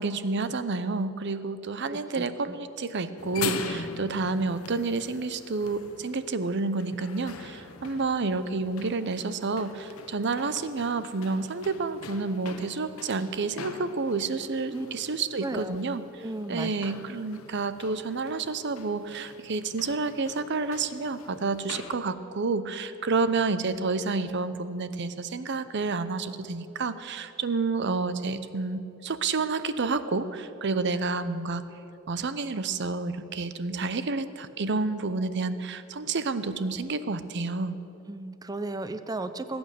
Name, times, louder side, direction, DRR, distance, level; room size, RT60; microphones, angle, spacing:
voice 1, 0.0-16.0 16.5-31.6 32.1-37.8, right 3 dB, 55° right, 13 dB, 0.7 m, -29 dB
voice 2, 1.9-2.6 14.7-14.9 15.4-15.8 16.2-16.9 38.1-39.6, right 2 dB, 15° right, 11 dB, 0.5 m, -35 dB
sound 1, 3.2-22.0, left 5 dB, 85° left, 0.9 m, -43 dB
20.0 x 8.8 x 6.7 m, 2.8 s
head